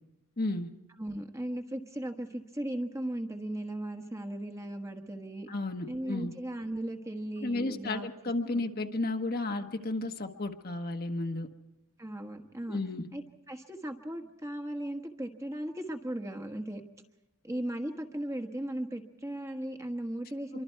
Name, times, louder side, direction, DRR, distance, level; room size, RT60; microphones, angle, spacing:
voice 1, 0.4-0.7 5.5-6.3 7.4-11.5 12.7-13.1, left 2 dB, 40° left, 5 dB, 1.2 m, -33 dB
voice 2, 1.0-5.5 5.9-8.6 12.0-12.8 13.1-16.8 17.4-20.6, right 1 dB, 15° right, 5 dB, 1.4 m, -37 dB
26.0 x 24.0 x 4.6 m, 0.98 s
head